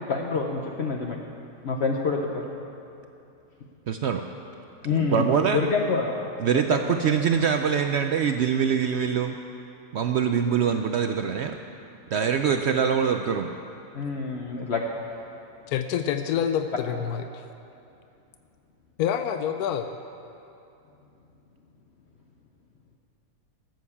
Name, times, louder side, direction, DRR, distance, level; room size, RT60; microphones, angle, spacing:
voice 1, 0.1-1.2 1.6-2.4 4.8-6.3 6.9-7.0 13.9-14.8, left 4 dB, 55° left, 1 dB, 0.9 m, -27 dB
voice 2, 3.9-4.2 4.9-5.6 6.4-9.4 9.9-11.6 12.1-13.5, right 7 dB, 65° right, 6 dB, 0.6 m, -24 dB
voice 3, 15.7-17.4 19.0-19.9, left 9 dB, 90° left, 8 dB, 1.1 m, -27 dB
14.0 x 7.8 x 7.1 m, 2.7 s
omnidirectional pair, 1.5 m